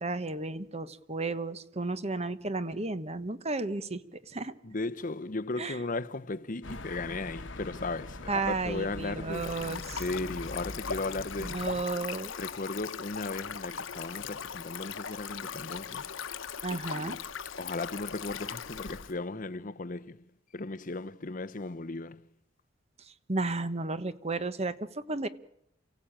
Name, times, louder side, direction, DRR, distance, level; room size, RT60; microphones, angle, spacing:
voice 1, 0.0-4.5 5.6-5.8 8.3-10.0 11.4-12.3 16.6-17.2 23.1-25.3, right 3 dB, 35° right, 1.2 m, -33 dB
voice 2, 4.6-11.6 12.4-16.1 16.8-17.2 17.6-20.3 20.5-22.3, left 3 dB, 45° left, 0.9 m, -36 dB
sound 1, 6.6-11.8, left 2 dB, 70° left, 1.5 m, -43 dB
Stream, 9.3-19.1, left 7 dB, 90° left, 1.0 m, -39 dB
29.0 x 16.0 x 8.9 m
head